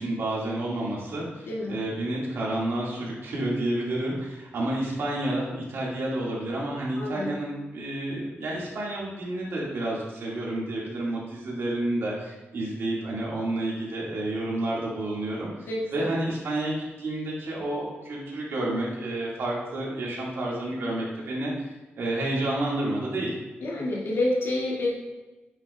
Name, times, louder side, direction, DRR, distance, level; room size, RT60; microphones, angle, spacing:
voice 1, 0.0-21.7 22.0-23.3, right 1 dB, 70° right, -4 dB, 2.1 m, -30 dB
voice 2, 7.0-7.3 15.6-16.1 23.6-24.9, left 1 dB, 70° left, -4 dB, 2.2 m, -28 dB
8.7 x 6.4 x 2.4 m, 1.1 s
wide cardioid pair, 170°, 4 cm